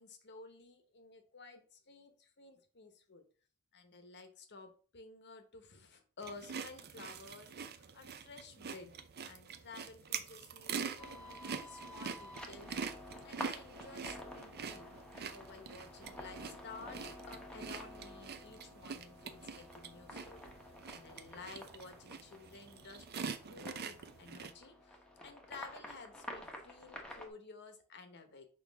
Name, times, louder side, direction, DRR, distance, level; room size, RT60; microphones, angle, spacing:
voice 1, 0.0-3.2 3.7-8.9 9.2-13.0 13.2-14.9 15.3-17.0 17.3-20.5 20.9-25.0 25.2-28.5, left 4 dB, 50° left, 7 dB, 1.1 m, -53 dB
sound 1, 6.2-24.5, right 6 dB, 45° right, 0.6 m, -45 dB
sound 2, 11.0-27.3, left 1 dB, 5° left, 1.0 m, -50 dB
6.3 x 4.9 x 3.5 m, 0.41 s
head